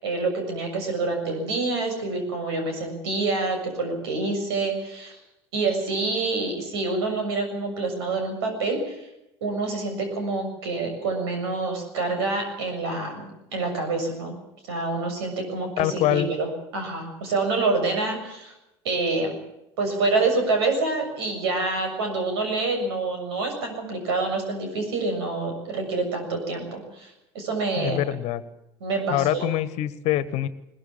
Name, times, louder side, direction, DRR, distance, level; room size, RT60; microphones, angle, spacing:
voice 1, 0.0-5.2 5.5-9.0 9.4-13.2 13.5-14.3 14.7-18.5 18.8-19.3 19.8-28.0 28.8-29.4, right 3 dB, 70° right, 5 dB, 7.0 m, -27 dB
voice 2, 15.8-16.3 27.8-28.4 29.1-30.5, left 13 dB, 55° left, 16 dB, 1.6 m, -24 dB
22.0 x 20.0 x 7.4 m, 0.88 s
figure-of-eight pair, 70°, 14 cm